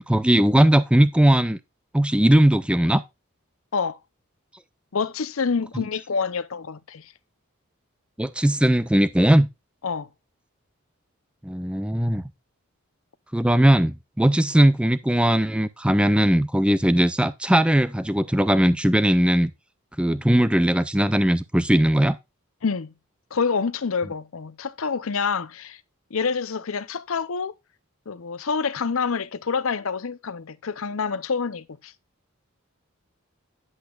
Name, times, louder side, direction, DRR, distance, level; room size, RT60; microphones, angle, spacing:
voice 1, 0.0-1.6 1.9-3.0 5.7-5.8 8.2-9.5 11.4-12.2 13.3-19.5 20.0-22.2, right 1 dB, 5° right, 0.4 m, -19 dB
voice 2, 4.9-7.1 9.8-10.1 22.6-22.9 23.3-25.8 26.1-27.5 28.1-31.9, left 5 dB, 75° left, 0.7 m, -27 dB
10.5 x 7.9 x 2.4 m
head